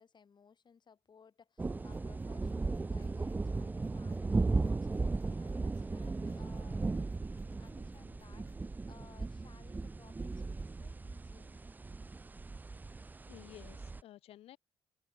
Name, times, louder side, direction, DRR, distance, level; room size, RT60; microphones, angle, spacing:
voice 1, 0.0-6.9 7.6-11.6, left 6 dB, 45° left, 5.3 m, -61 dB
sound 1, 1.6-14.0, right 3 dB, 15° right, 0.4 m, -36 dB
sound 2, 1.7-8.7, left 4 dB, 30° left, 2.2 m, -63 dB
voice 2, 13.3-14.6, left 13 dB, 70° left, 1.7 m, -54 dB
hypercardioid pair, 50°, 10 cm